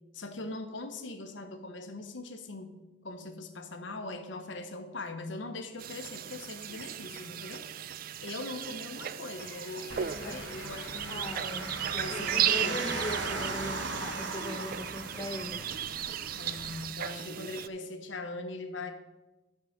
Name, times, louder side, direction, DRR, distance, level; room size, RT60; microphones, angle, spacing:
voice 1, 0.1-2.8 3.0-7.6 8.2-11.2 11.9-13.2 16.3-18.9, left 2 dB, 75° left, 7 dB, 1.1 m, -41 dB
sound 1, 5.8-17.7, right 10 dB, 50° right, 0.4 m, -36 dB
sound 2, 9.4-14.6, left 3 dB, 55° left, 1.8 m, -51 dB
sound 3, 9.9-16.8, right 3 dB, 70° right, 1.1 m, -38 dB
voice 2, 11.1-15.6, left 1 dB, 20° left, 4 dB, 0.8 m, -39 dB
11.5 x 4.8 x 6.4 m, 1.1 s
head